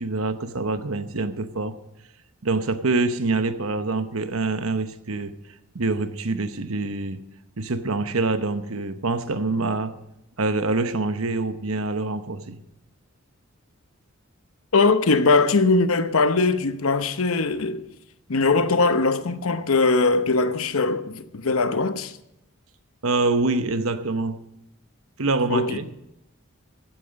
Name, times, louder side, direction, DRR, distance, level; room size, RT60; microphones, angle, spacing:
voice 1, 0.0-1.8 2.4-5.3 5.7-7.3 7.6-10.0 10.4-12.6 23.0-24.4 25.2-25.9, right 3 dB, 85° right, 1.0 m, -25 dB
voice 2, 14.7-17.9 18.3-22.2 25.5-25.7, left 3 dB, 90° left, 0.9 m, -21 dB
15.0 x 9.3 x 6.4 m
head